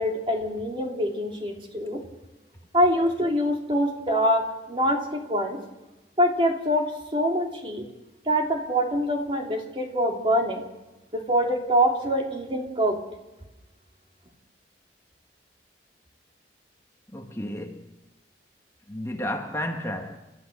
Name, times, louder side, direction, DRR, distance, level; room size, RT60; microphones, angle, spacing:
voice 1, 0.0-2.0 2.7-5.6 6.2-7.8 8.3-10.6 11.1-13.0, equal, 30° right, 2 dB, 2.9 m, -24 dB
voice 2, 17.1-17.9 18.9-20.2, left 1 dB, 15° left, 3 dB, 1.5 m, -32 dB
29.5 x 13.5 x 6.6 m, 1.0 s
head